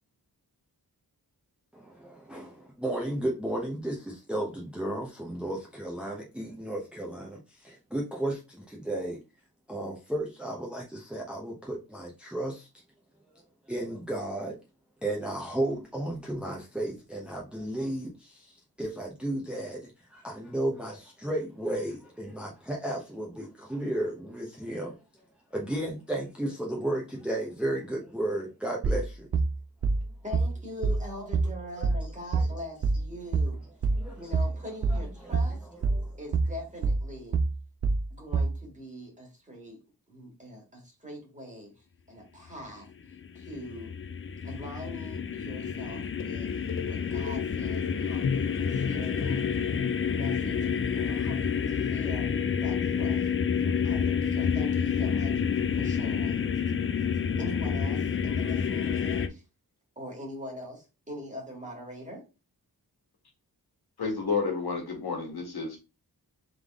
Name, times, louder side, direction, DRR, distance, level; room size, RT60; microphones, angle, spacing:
voice 1, 1.7-9.2 9.7-12.7 13.7-14.5 15.0-25.0 25.5-29.3 31.1-31.3 32.4-32.5 34.0-34.3 34.9-35.3 35.9-36.2, right 1 dB, 5° right, 0.8 m, -34 dB
sound 1, 28.8-38.6, right 4 dB, 40° right, 0.5 m, -27 dB
voice 2, 30.2-33.6 34.2-35.7 36.2-37.4 38.2-39.8 40.1-42.9 43.3-43.9 44.4-46.5 46.8-49.7 50.1-52.3 52.6-53.3 53.6-55.3 55.7-56.5 57.4-59.4 60.0-62.2, left 1 dB, 20° right, 1.9 m, -43 dB
sound 2, 42.9-59.3, left 7 dB, 35° left, 0.4 m, -29 dB
voice 3, 64.0-65.8, left 4 dB, 75° left, 1.5 m, -30 dB
3.8 x 3.4 x 3.5 m
wide cardioid pair, 130°, 38 cm